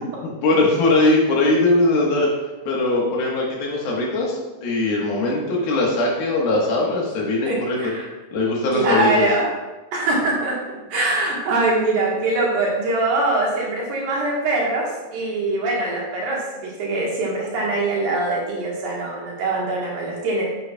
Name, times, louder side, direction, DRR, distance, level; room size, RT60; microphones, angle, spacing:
voice 1, 0.0-2.3 2.7-7.9 8.3-9.3, left 2 dB, 65° left, -3 dB, 3.0 m, -20 dB
voice 2, 7.5-8.1 8.7-9.5 9.9-20.4, right 2 dB, 65° right, -4 dB, 2.9 m, -23 dB
9.5 x 8.5 x 2.3 m, 1.1 s
omnidirectional pair, 4.9 m